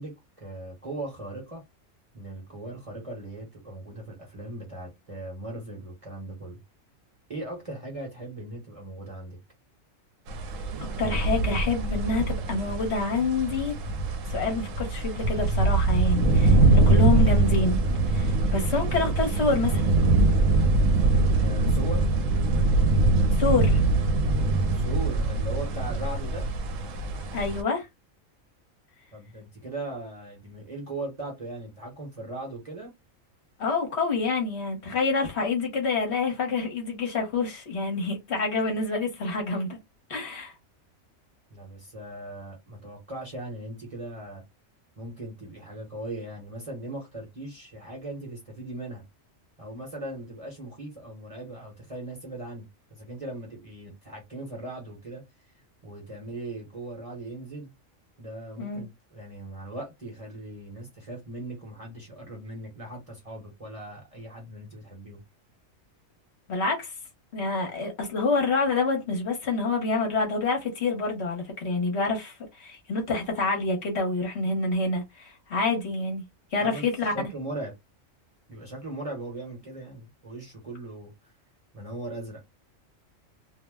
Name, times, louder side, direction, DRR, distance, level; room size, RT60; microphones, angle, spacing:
voice 1, 0.0-1.6 2.1-6.6 7.3-9.4 21.4-22.1 24.7-26.5 29.1-32.9 41.5-44.4 45.0-49.0 49.6-55.2 55.8-57.7 58.2-65.2 76.6-76.9 77.1-77.7 78.5-81.1 81.7-82.4, right 1 dB, 30° right, 0.9 m, -39 dB
sound 1, 10.3-27.6, right 2 dB, 75° right, 1.0 m, -23 dB
voice 2, 11.0-13.8 14.3-17.8 18.1-19.9 23.4-23.8 27.3-27.9 33.6-39.8 40.1-40.5 58.6-58.8 66.5-66.9 67.3-76.2 76.5-77.1, left 3 dB, 60° left, 1.2 m, -27 dB
2.6 x 2.0 x 3.3 m
omnidirectional pair, 1.4 m